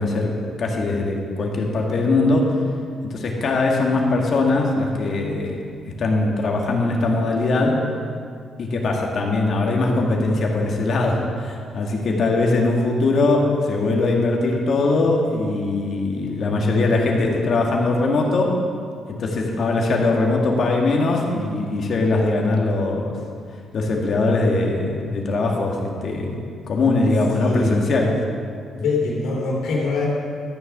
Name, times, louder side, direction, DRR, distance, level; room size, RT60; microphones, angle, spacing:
voice 1, 0.0-2.6 3.0-5.6 6.0-7.9 8.6-18.6 19.1-23.2 23.7-28.2, left 2 dB, 55° left, 0 dB, 1.8 m, -21 dB
voice 2, 27.4-27.7 28.7-30.1, left 3 dB, 85° left, -2 dB, 2.9 m, -23 dB
13.0 x 6.7 x 5.9 m, 2.2 s
cardioid pair, 95°, 0 cm